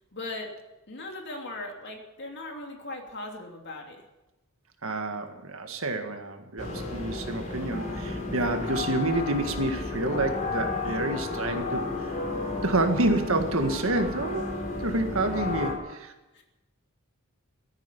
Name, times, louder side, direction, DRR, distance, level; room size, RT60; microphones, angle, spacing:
voice 1, 0.1-0.5 0.9-4.0 16.3-16.4, left 2 dB, 55° left, 2 dB, 2.9 m, -38 dB
voice 2, 4.8-12.2 12.6-16.1, right 2 dB, 70° right, 6 dB, 1.8 m, -28 dB
sound 1, 6.6-15.7, left 3 dB, 35° left, 3.8 m, -32 dB
15.5 x 8.9 x 10.0 m, 1.0 s
head